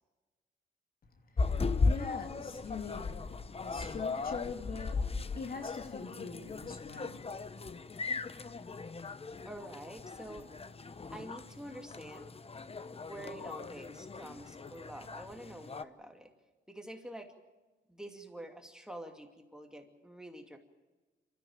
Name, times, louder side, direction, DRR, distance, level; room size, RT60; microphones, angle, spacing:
sound 1, 1.4-15.8, left 4 dB, 30° left, 0.9 m, -37 dB
voice 1, 1.8-5.1 5.4-7.3, left 5 dB, 50° left, 5 dB, 2.5 m, -43 dB
voice 2, 9.4-10.5 11.1-12.3 12.9-16.3 16.7-17.3 17.9-20.6, right 1 dB, 5° right, 3 dB, 2.6 m, -47 dB
26.5 x 14.0 x 8.9 m, 1.2 s
cardioid pair, 90°, 19 cm